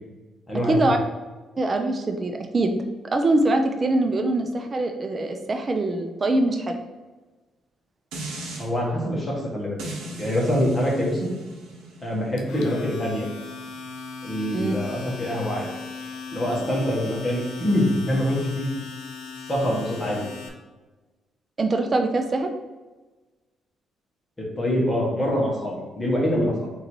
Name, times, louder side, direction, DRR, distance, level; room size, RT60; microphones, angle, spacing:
voice 1, 0.7-1.0 1.6-2.8 3.1-6.8 14.5-14.7 21.6-22.5, right 2 dB, 35° right, 5 dB, 0.6 m, -23 dB
sound 1, 8.1-8.7 9.8-14.9 15.4-15.5, right 2 dB, 90° right, 1.0 m, -39 dB
voice 2, 8.6-9.8 10.2-11.3 12.0-13.3 14.2-15.7 16.3-18.7 19.5-20.3 24.4-26.7, equal, 20° left, -3 dB, 1.5 m, -25 dB
Domestic sounds home sounds, 12.4-20.5, left 4 dB, 85° left, 0.6 m, -38 dB
3.9 x 2.7 x 4.6 m, 1.2 s
cardioid pair, 90°, 0 cm